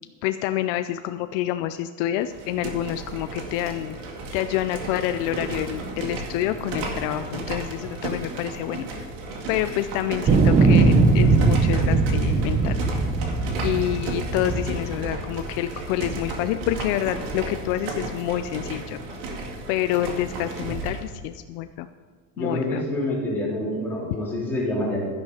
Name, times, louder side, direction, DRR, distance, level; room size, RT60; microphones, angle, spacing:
voice 1, 0.2-4.0 4.3-8.9 9.5-12.7 13.6-19.0 19.7-21.9 22.4-22.8, left 12 dB, 65° left, 10 dB, 0.6 m, -27 dB
sound 1, 2.2-21.1, right 2 dB, 70° right, 2.2 m, -34 dB
sound 2, 10.3-15.5 16.0-16.8, right 3 dB, 20° right, 0.7 m, -20 dB
voice 2, 22.4-25.1, left 1 dB, 5° left, -7 dB, 3.9 m, -27 dB
12.0 x 10.5 x 4.9 m, 1.5 s
cardioid pair, 160°, 40 cm